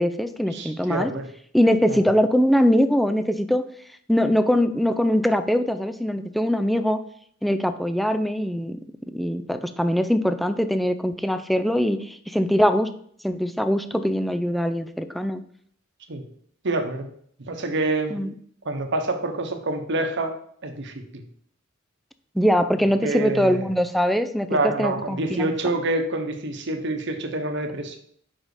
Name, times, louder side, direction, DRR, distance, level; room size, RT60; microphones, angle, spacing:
voice 1, 0.0-1.1 1.5-3.6 4.1-7.0 7.4-8.8 9.1-12.9 13.2-15.4 18.1-18.3 22.3-25.5, equal, ahead, 9 dB, 0.4 m, -22 dB
voice 2, 0.5-1.3 1.9-2.0 16.1-16.3 16.6-17.1 17.4-18.2 18.6-20.4 20.6-21.2 23.0-23.7 24.5-28.0, right 2 dB, 60° right, 5 dB, 1.0 m, -27 dB
5.6 x 5.2 x 4.8 m, 0.63 s
head